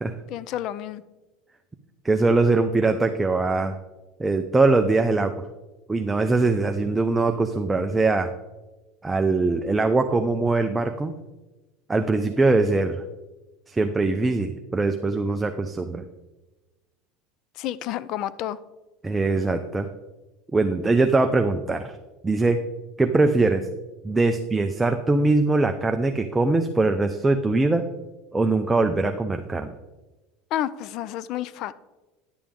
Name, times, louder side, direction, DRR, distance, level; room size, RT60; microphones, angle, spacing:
voice 1, 0.3-1.0 17.6-18.6 30.5-31.7, left 12 dB, 55° left, 17 dB, 0.4 m, -30 dB
voice 2, 2.0-3.8 4.2-5.3 5.9-8.3 9.0-11.1 11.9-13.0 13.7-16.0 19.0-19.9 20.5-21.9 22.2-22.6 23.0-23.7 24.0-27.8 28.3-29.7, right 3 dB, 15° right, 6 dB, 0.5 m, -22 dB
10.5 x 6.9 x 3.7 m, 1.1 s
supercardioid pair, 110°, 0 cm